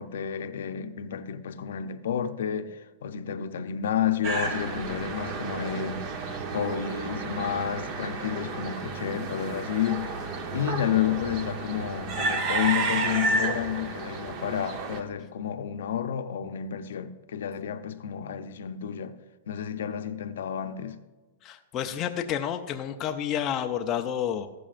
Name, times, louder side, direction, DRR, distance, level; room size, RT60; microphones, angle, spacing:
voice 1, 0.0-6.0 6.5-10.2 10.5-19.2 19.5-21.0, left 9 dB, 75° left, 0.7 m, -31 dB
sound 1, 4.2-15.0, right 3 dB, 30° right, 0.9 m, -31 dB
voice 2, 21.4-24.5, left 9 dB, 20° left, 0.4 m, -30 dB
15.0 x 12.5 x 2.5 m
supercardioid pair, 175°, 0 cm